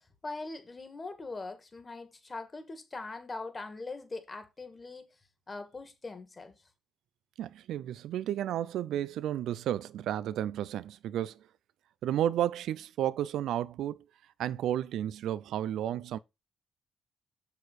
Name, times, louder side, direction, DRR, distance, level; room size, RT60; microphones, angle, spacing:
voice 1, 0.0-5.1 5.5-6.6, left 3 dB, 30° left, 2.1 m, -42 dB
voice 2, 7.4-11.5 12.0-14.0 14.4-16.2, right 11 dB, 80° right, 0.4 m, -32 dB
6.9 x 6.6 x 4.1 m
cardioid pair, 90°, 0 cm